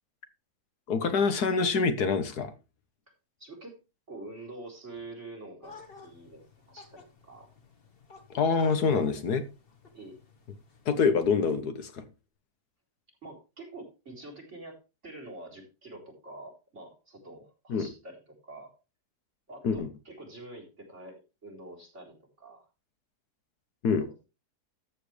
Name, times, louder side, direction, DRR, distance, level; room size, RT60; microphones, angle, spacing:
voice 1, 0.9-2.5 8.3-9.4 10.9-12.0 17.7-17.9 19.6-19.9 23.8-24.1, left 5 dB, 70° left, 1.7 m, -26 dB
voice 2, 3.4-3.8 4.1-7.5 9.9-10.2 13.2-18.7 19.5-22.7 24.0-24.1, right 2 dB, 45° right, 4.3 m, -46 dB
sound 1, 5.6-11.1, left 4 dB, 35° left, 1.7 m, -53 dB
13.5 x 7.6 x 3.3 m
omnidirectional pair, 1.7 m